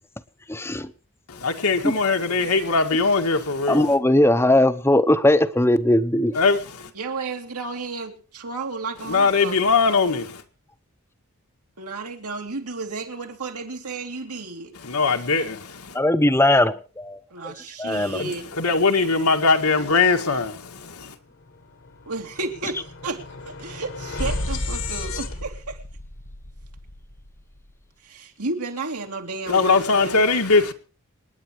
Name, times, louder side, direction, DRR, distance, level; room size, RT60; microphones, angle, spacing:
voice 1, 0.5-0.9 1.8-1.9 3.7-6.4 15.9-17.2 17.4-17.5 17.8-18.2, left 1 dB, 10° left, 0.8 m, -19 dB
voice 2, 1.3-3.9 6.3-6.9 9.1-10.4 14.8-16.0 18.2-21.1 29.5-30.7, left 4 dB, 80° left, 1.9 m, -21 dB
voice 3, 6.9-9.8 11.8-14.7 17.3-18.5 22.1-25.8 28.0-30.3, right 3 dB, 85° right, 2.8 m, -32 dB
sound 1, 21.1-21.2 21.5-27.7, left 2 dB, 60° left, 1.5 m, -33 dB
27.0 x 10.0 x 3.1 m
head